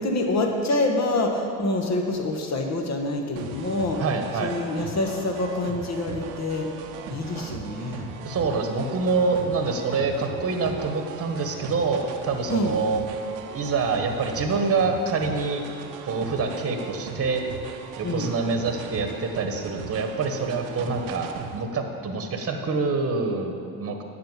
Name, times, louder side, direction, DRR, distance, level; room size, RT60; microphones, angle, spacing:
voice 1, 0.0-4.0 4.4-6.7 7.1-8.1 12.5-12.7 18.0-18.3, left 2 dB, 35° left, 3 dB, 1.7 m, -26 dB
sound 1, 3.4-21.6, right 6 dB, 85° right, 1.0 m, -39 dB
voice 2, 4.0-4.6 8.2-13.0 13.5-15.6 16.0-17.4 18.0-24.0, right 4 dB, 30° right, 5 dB, 1.4 m, -26 dB
9.3 x 6.2 x 7.5 m, 2.9 s
supercardioid pair, 85°, 45 cm